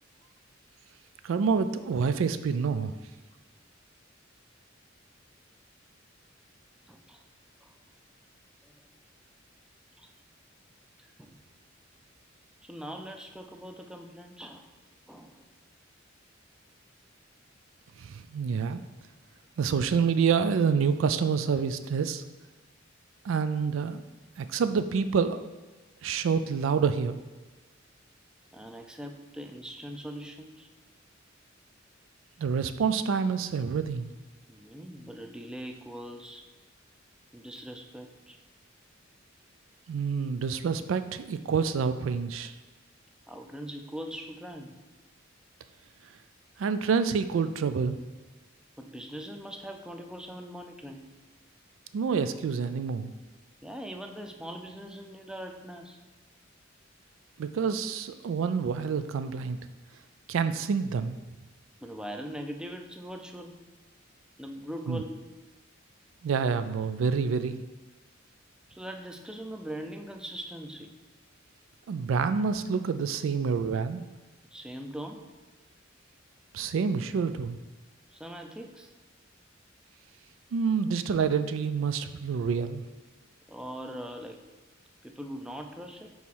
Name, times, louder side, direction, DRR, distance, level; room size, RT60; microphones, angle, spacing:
voice 1, 1.2-2.9 18.0-18.8 19.6-22.2 23.2-24.0 24.4-25.4 26.0-27.2 32.4-34.1 39.9-42.6 46.6-48.0 51.9-53.1 57.4-59.6 60.3-61.2 64.9-65.0 66.2-67.6 71.9-74.0 76.5-77.6 80.5-82.8, right 6 dB, 75° right, 11 dB, 0.3 m, -27 dB
voice 2, 6.9-7.2 7.6-7.7 8.6-8.7 10.0-10.1 11.0-11.4 12.6-14.7 15.1-15.4 28.5-30.7 34.5-36.4 37.3-38.4 43.3-44.8 48.8-51.0 53.6-56.0 61.8-63.7 64.4-65.2 68.7-70.9 74.5-75.3 78.1-78.9 83.5-84.4 85.0-86.1, equal, 5° right, 4 dB, 0.4 m, -41 dB
4.7 x 4.2 x 5.4 m, 1.2 s
head